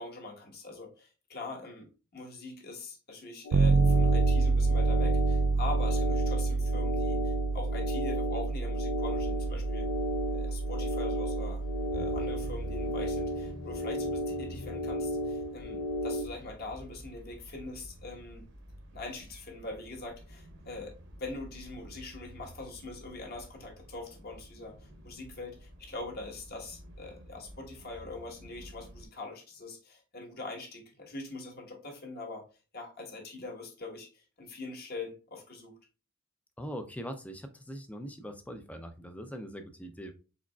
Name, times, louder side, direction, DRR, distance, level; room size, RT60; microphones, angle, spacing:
voice 1, 0.0-9.9 10.3-11.6 11.9-18.5 18.9-20.9 21.2-32.4 32.7-35.8, left 2 dB, 45° left, 1 dB, 1.2 m, -43 dB
sound 1, 3.4-16.2, equal, 65° left, 0.5 m, -34 dB
Bass guitar, 3.5-13.3, right 3 dB, 75° right, 0.3 m, -28 dB
sound 2, 9.1-29.1, equal, 55° right, 0.8 m, -49 dB
voice 2, 36.6-40.1, equal, 5° left, 7 dB, 0.4 m, -41 dB
4.9 x 3.9 x 2.3 m, 0.34 s
head